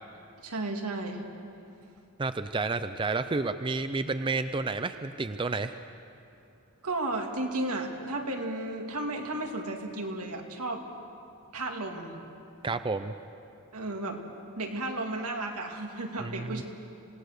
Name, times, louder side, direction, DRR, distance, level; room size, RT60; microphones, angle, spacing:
voice 1, 0.4-1.2 6.8-10.8 11.5-12.1 13.7-14.2 14.5-16.6, right 2 dB, 85° right, 2 dB, 2.4 m, -33 dB
voice 2, 2.2-5.8 12.6-13.1 16.2-16.6, right 3 dB, 20° right, 10 dB, 0.4 m, -30 dB
27.0 x 18.0 x 6.6 m, 2.6 s
head